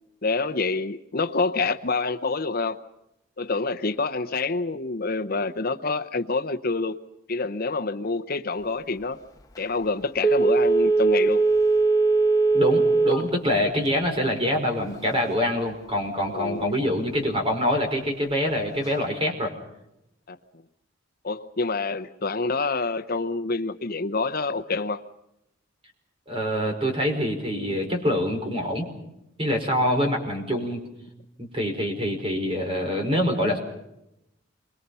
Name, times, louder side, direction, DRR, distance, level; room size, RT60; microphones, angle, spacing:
voice 1, 0.2-2.8 3.4-7.0 7.3-9.2 9.6-11.5 16.3-16.7 20.3-20.4 21.2-25.0, left 3 dB, 45° left, 9 dB, 0.8 m, -27 dB
Telephone, 10.2-13.3 13.7-13.8, right 3 dB, 15° left, 1.5 m, -20 dB
voice 2, 12.5-19.5 26.3-28.9 29.4-30.8 31.4-33.6, equal, 30° right, 3 dB, 5.2 m, -25 dB
28.0 x 24.0 x 5.6 m, 0.84 s
head